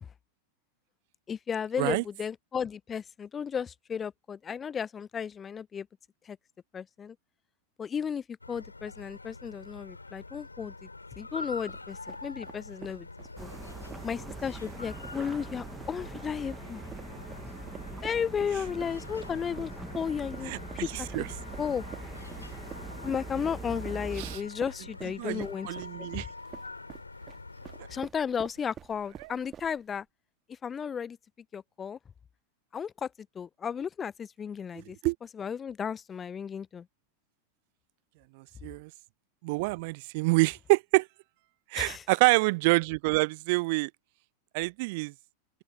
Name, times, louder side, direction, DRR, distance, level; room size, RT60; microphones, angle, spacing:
voice 1, 1.3-5.9 6.3-6.4 6.7-7.1 7.8-10.7 11.2-13.1 13.4-13.5 14.0-16.8 18.0-20.5 21.0-21.3 21.6-21.8 23.0-25.7 27.9-30.0 30.6-31.2 31.5-32.0 32.7-33.1 33.4-35.0 35.3-36.8 41.7-42.0, left 7 dB, 20° left, 0.7 m, -34 dB
sound 1, 8.4-28.0, left 3 dB, 80° left, 4.9 m, -45 dB
sound 2, 11.7-30.0, right 9 dB, 25° right, 2.0 m, -48 dB
sound 3, 13.4-24.4, right 2 dB, 10° right, 1.4 m, -42 dB
voice 2, 20.4-21.3 24.2-24.4 25.2-26.3 29.2-29.3 35.0-35.1 38.4-38.9 39.4-41.1 41.7-43.9 44.5-45.1, right 26 dB, 50° right, 0.6 m, -27 dB
open air
figure-of-eight pair, 90°, 0 cm